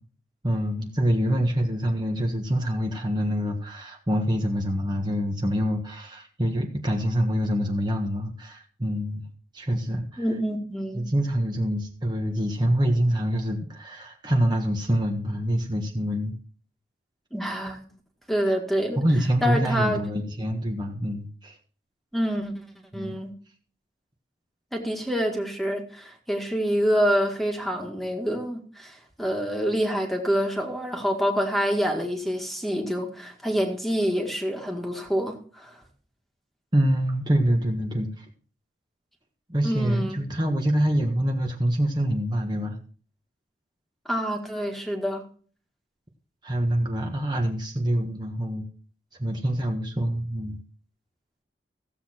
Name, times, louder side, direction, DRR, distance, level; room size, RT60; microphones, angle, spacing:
voice 1, 0.4-9.2 9.5-10.3 10.9-16.3 19.0-21.6 22.9-23.2 36.7-38.3 39.5-42.8 46.4-48.6 49.2-50.6, equal, 25° right, 1.5 m, -25 dB
voice 2, 10.2-11.1 17.3-17.8 18.3-19.0 19.4-20.0 22.1-22.6 22.9-23.3 24.7-35.8 39.6-40.2 44.1-45.2, equal, ahead, 1.9 m, -27 dB
15.5 x 8.1 x 4.4 m
head